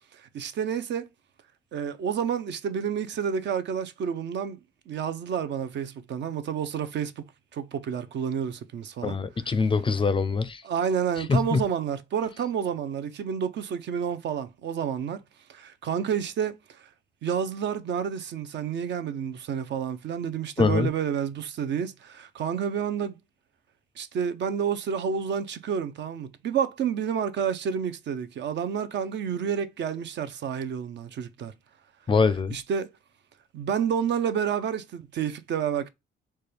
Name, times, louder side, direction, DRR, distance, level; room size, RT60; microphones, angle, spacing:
voice 1, 0.1-1.1 1.7-4.6 4.9-9.5 10.6-15.2 15.5-16.9 17.2-23.2 24.0-31.5 32.5-32.9 33.5-35.9, right 7 dB, 60° right, 0.6 m, -29 dB
voice 2, 9.0-10.6 11.3-11.6 20.6-20.9 32.1-32.6, left 4 dB, 25° left, 0.4 m, -23 dB
4.3 x 2.2 x 3.3 m
cardioid pair, 90°, 20 cm